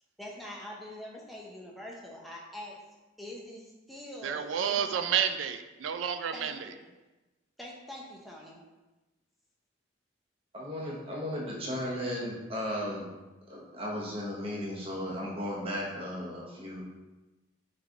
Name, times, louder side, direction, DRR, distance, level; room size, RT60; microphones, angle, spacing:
voice 1, 0.2-2.8 3.2-5.1 6.3-6.9 7.6-8.7, left 1 dB, ahead, -3 dB, 0.6 m, -44 dB
voice 2, 4.2-6.7, right 8 dB, 75° right, 9 dB, 0.3 m, -30 dB
voice 3, 10.5-13.1 13.5-16.8, equal, 30° right, -4 dB, 0.8 m, -35 dB
3.5 x 3.2 x 3.8 m, 1.1 s
head